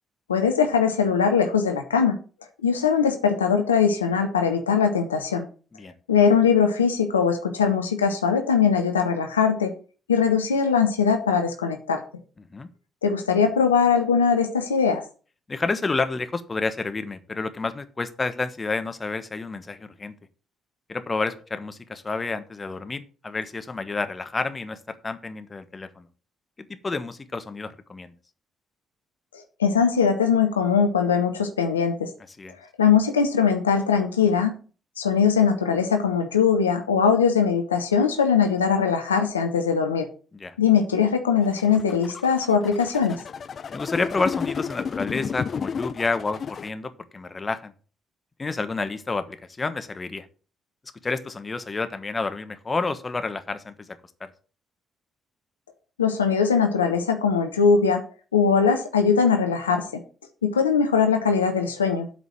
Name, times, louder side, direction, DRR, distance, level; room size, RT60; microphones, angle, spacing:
voice 1, 0.3-2.2 2.6-5.4 6.1-9.7 10.1-12.0 13.0-15.0 29.6-32.1 32.8-34.6 35.0-40.1 40.6-43.2 56.0-58.0 58.3-60.0 60.4-62.1, left 6 dB, 85° left, 6 dB, 0.9 m, -21 dB
voice 2, 12.4-12.7 15.5-20.1 20.9-26.1 26.7-28.1 32.4-32.6 40.3-40.5 43.7-47.7 48.4-50.3 51.0-53.9 54.2-54.3, left 3 dB, 30° left, 10 dB, 1.3 m, -29 dB
sound 1, 41.4-46.7, left 6 dB, 45° left, 0.6 m, -32 dB
8.2 x 5.0 x 7.5 m, 0.38 s
figure-of-eight pair, 45°, 0 cm